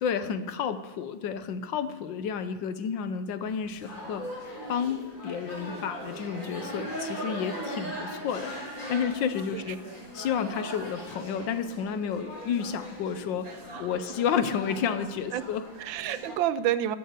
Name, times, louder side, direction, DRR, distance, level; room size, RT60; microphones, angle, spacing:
voice 1, 0.0-9.8 10.1-13.5 13.8-15.7, left 7 dB, 75° left, 11 dB, 1.4 m, -31 dB
sound 1, 3.4-16.4, equal, 40° left, 4.2 m, -40 dB
voice 2, 9.5-10.0 13.5-13.9 15.3-15.4 15.8-17.0, right 11 dB, 80° right, 14 dB, 1.3 m, -30 dB
13.0 x 7.8 x 8.1 m, 1.2 s
omnidirectional pair, 2.2 m